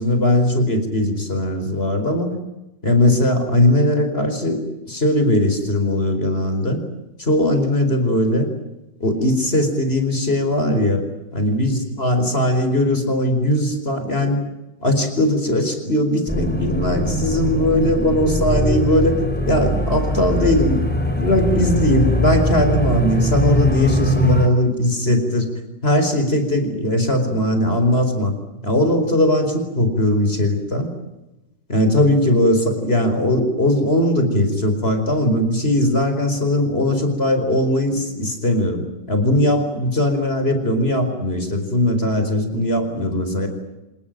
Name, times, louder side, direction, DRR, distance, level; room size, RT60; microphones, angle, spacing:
voice 1, 0.0-2.3 2.8-6.8 7.2-8.5 9.0-11.1 11.3-14.4 14.8-19.2 19.5-20.8 21.2-25.5 25.8-28.3 28.6-30.9 31.7-38.8 39.1-43.5, left 1 dB, 35° left, 7 dB, 4.9 m, -19 dB
sound 1, 16.3-24.5, equal, 5° left, 3.3 m, -21 dB
27.0 x 20.0 x 9.1 m, 0.99 s
omnidirectional pair, 1.9 m